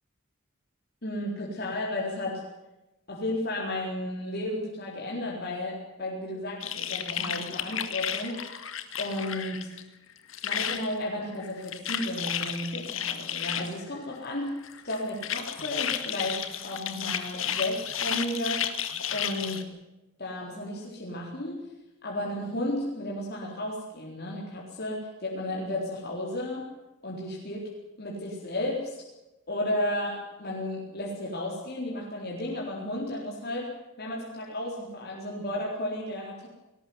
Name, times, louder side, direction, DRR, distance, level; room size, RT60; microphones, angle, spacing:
voice 1, 1.0-2.4 3.1-8.4 9.0-9.7 10.4-14.5 14.8-18.7 19.1-19.7 20.2-21.6 22.0-26.7 27.0-27.7 28.0-29.0 29.5-33.7 34.0-36.5, left 1 dB, 50° left, -2 dB, 4.1 m, -33 dB
sound 1, 6.6-9.8 10.1-10.9 11.4-13.7 14.6-19.6, left 9 dB, 80° left, 1.9 m, -33 dB
20.0 x 18.0 x 9.5 m, 0.98 s
head